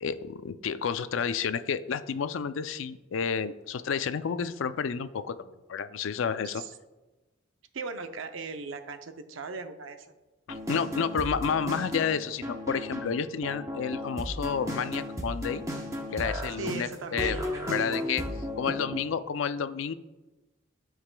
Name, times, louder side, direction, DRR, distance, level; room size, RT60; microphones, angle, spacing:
voice 1, 0.0-6.6 10.5-15.6 16.1-17.4 17.7-18.2 18.6-19.9, left 6 dB, 80° left, 12 dB, 0.4 m, -30 dB
voice 2, 7.7-10.1 16.6-17.4 17.8-18.0, right 4 dB, 80° right, 8 dB, 0.6 m, -38 dB
sound 1, 10.5-19.0, left 1 dB, 15° right, 0.9 m, -35 dB
13.0 x 4.9 x 2.2 m, 1.1 s
head